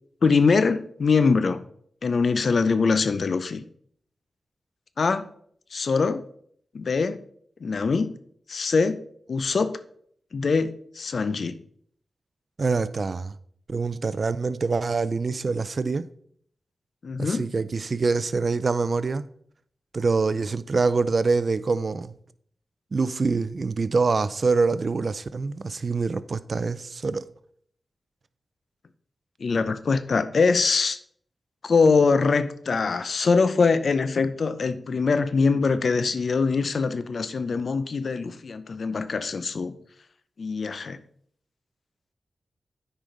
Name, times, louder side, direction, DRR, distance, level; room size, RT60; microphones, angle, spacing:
voice 1, 0.2-1.6 2.0-3.6 5.0-5.3 5.7-6.2 6.7-7.2 7.6-8.1 8.5-9.0 9.3-9.7 10.3-11.5 17.0-17.5 29.4-31.0 31.6-39.7 40.4-41.0, left 4 dB, 70° left, 0.5 m, -23 dB
voice 2, 12.6-13.4 13.7-16.1 17.2-19.3 19.9-22.1 22.9-27.3, right 4 dB, 60° right, 0.4 m, -25 dB
8.9 x 5.0 x 3.9 m
cardioid pair, 50°, 0 cm